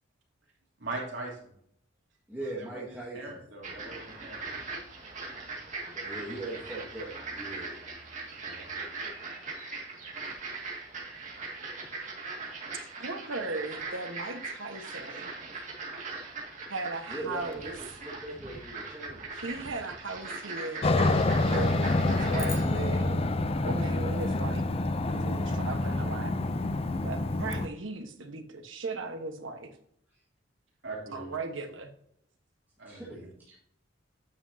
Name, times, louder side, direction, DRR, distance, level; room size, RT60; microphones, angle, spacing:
voice 1, 0.8-1.5 2.4-4.5 8.4-8.7 10.2-10.3 30.8-31.4 32.8-33.3, right 2 dB, 70° right, -2 dB, 3.1 m, -41 dB
voice 2, 2.3-3.4 5.8-7.8 17.1-17.7 18.0-19.3 32.8-33.2, right 2 dB, 10° right, -7 dB, 1.8 m, -40 dB
sound 1, 3.6-22.6, right 3 dB, 40° right, 2.1 m, -40 dB
voice 3, 13.0-15.3 16.7-18.0 19.3-21.0 21.5-23.2 23.6-26.3 27.0-29.7 31.1-31.9, right 3 dB, 85° right, 5 dB, 1.3 m, -37 dB
Aircraft, 20.8-27.7, left 2 dB, 30° left, 0.5 m, -27 dB
sound 2, 22.4-24.8, left 4 dB, 15° left, 0.9 m, -46 dB
9.3 x 7.7 x 2.8 m, 0.69 s
head